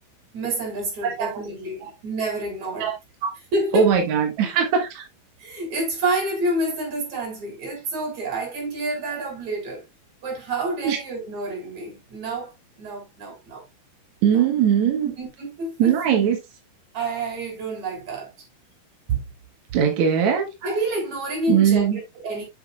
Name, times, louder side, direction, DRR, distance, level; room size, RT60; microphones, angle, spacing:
voice 1, 0.3-2.9 3.5-4.0 5.4-9.8 10.2-13.6 14.3-14.5 15.0-15.9 16.9-18.3 19.1-19.3 20.6-22.4, right 2 dB, 40° right, 4.8 m, -28 dB
voice 2, 1.0-1.3 2.8-2.9 3.2-3.3 3.7-5.0 10.8-11.0 14.2-15.1 15.8-16.4 19.7-20.5 21.5-22.0, right 8 dB, 65° right, 1.8 m, -20 dB
8.1 x 7.2 x 2.4 m
omnidirectional pair, 5.2 m